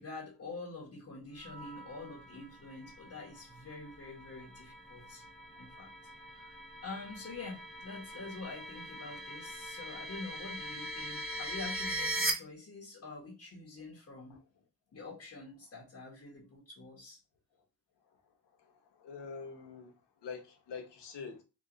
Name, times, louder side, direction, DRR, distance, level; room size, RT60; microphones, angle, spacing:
voice 1, 0.0-5.2 5.6-5.9 6.3-14.4 14.9-17.2, left 3 dB, 35° left, 1.4 m, -46 dB
sound 1, 1.4-12.3, right 1 dB, ahead, 0.8 m, -41 dB
voice 2, 18.6-19.9 20.2-21.4, left 5 dB, 70° left, 1.2 m, -45 dB
3.0 x 2.8 x 3.9 m
cardioid pair, 110°, 43 cm